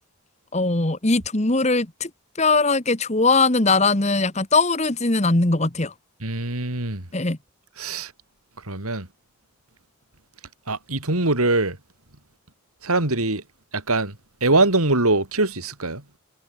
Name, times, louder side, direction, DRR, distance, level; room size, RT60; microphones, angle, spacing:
voice 1, 0.5-2.1 2.4-5.9 7.1-7.4, left 3 dB, 30° left, 1.5 m, -20 dB
voice 2, 6.2-7.1 7.8-8.1 8.6-9.1 10.7-11.8 12.8-13.4 13.7-16.0, right 2 dB, 90° right, 4.5 m, -22 dB
head